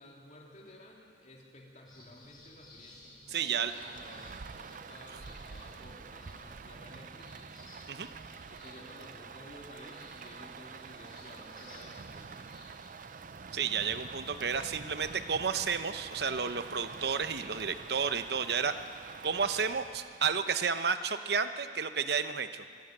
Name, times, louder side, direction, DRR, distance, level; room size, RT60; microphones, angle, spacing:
voice 1, 0.0-7.5 8.5-12.6, left 1 dB, 40° left, -2 dB, 3.3 m, -53 dB
sound 1, 1.9-13.9, left 1 dB, 25° left, 6.2 m, -57 dB
voice 2, 3.3-3.7 7.9-8.1 13.5-18.7 19.2-22.6, right 6 dB, 60° right, 10 dB, 0.9 m, -31 dB
Rain, 3.6-20.6, right 5 dB, 45° right, 0.5 m, -47 dB
25.5 x 11.5 x 8.9 m, 2.4 s
head